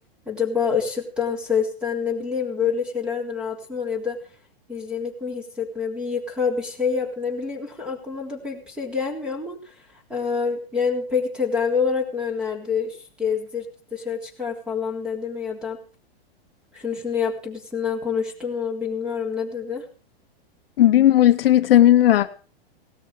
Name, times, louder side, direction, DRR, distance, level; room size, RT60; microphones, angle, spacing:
voice 1, 0.2-4.2 4.7-9.7 10.1-15.8 16.7-19.8, left 6 dB, 5° right, 3.4 m, -27 dB
voice 2, 20.8-22.4, left 12 dB, 65° left, 1.1 m, -15 dB
17.5 x 13.0 x 4.8 m
supercardioid pair, 160°, 30 cm